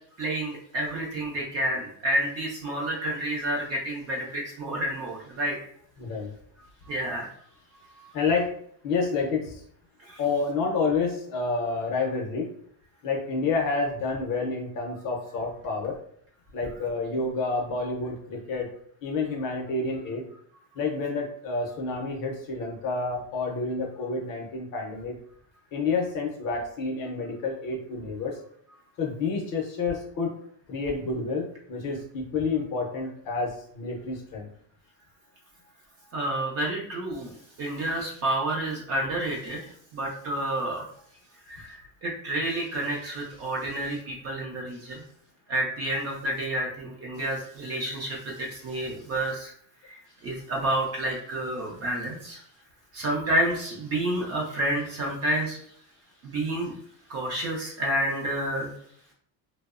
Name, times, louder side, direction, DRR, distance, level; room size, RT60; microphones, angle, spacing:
voice 1, 0.2-5.6 6.9-7.3 8.0-8.1 10.1-10.2 36.1-37.3 37.6-39.6 39.9-40.9 41.5-45.0 45.5-49.5 49.8-52.4 52.9-55.6 56.2-56.7 57.1-58.7, right 1 dB, 35° right, -2 dB, 0.4 m, -29 dB
voice 2, 6.0-6.3 8.1-8.5 8.8-9.6 10.2-12.5 13.0-16.0 16.5-18.7 19.0-20.2 20.7-25.2 25.7-28.4 29.0-30.3 30.7-34.5, left 4 dB, 45° left, 0 dB, 0.6 m, -29 dB
2.6 x 2.0 x 2.3 m, 0.64 s
cardioid pair, 160°, 46 cm